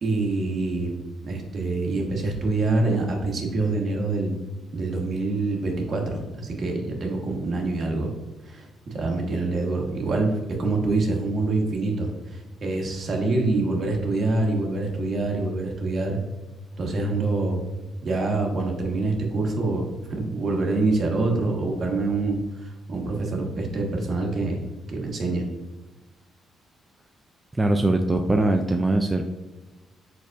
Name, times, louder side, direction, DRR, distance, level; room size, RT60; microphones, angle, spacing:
voice 1, 0.0-4.4 4.7-8.1 8.4-16.2 16.8-17.6 18.0-24.6 24.9-25.4, right 2 dB, 50° right, 1 dB, 1.1 m, -26 dB
voice 2, 27.6-29.2, right 2 dB, 15° right, 3 dB, 0.4 m, -21 dB
5.0 x 4.1 x 2.3 m, 1.1 s
cardioid pair, 90°, 0 cm